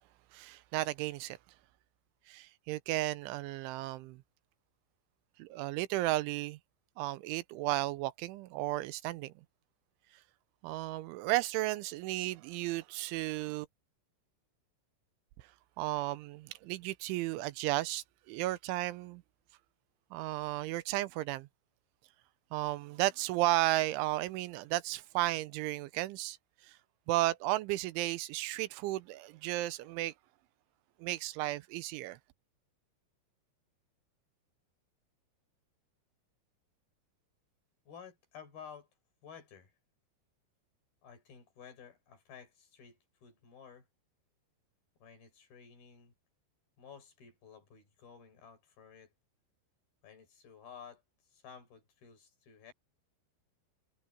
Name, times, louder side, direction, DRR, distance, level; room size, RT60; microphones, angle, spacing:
voice 1, 0.3-1.4 2.3-4.2 5.4-6.6 7.0-9.4 10.6-13.7 15.8-19.2 20.1-21.5 22.5-26.4 26.6-26.8 27.1-30.1 31.0-32.2, right 17 dB, 90° right, 3.2 m, -34 dB
voice 2, 37.9-38.9 39.2-39.7 41.0-43.9 45.0-46.1 46.8-49.1 50.0-51.0 51.3-52.7, left 7 dB, 55° left, 6.1 m, -53 dB
omnidirectional pair, 5.4 m